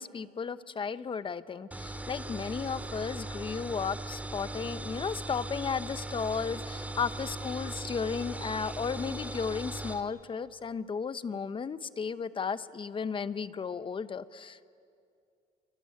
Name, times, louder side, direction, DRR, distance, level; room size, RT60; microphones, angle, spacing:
voice 1, 0.0-14.7, left 6 dB, 30° left, 14 dB, 0.9 m, -34 dB
sound 1, 1.7-10.0, right 2 dB, 10° right, 1.9 m, -39 dB
27.0 x 23.5 x 9.3 m, 2.4 s
cardioid pair, 110°, 17 cm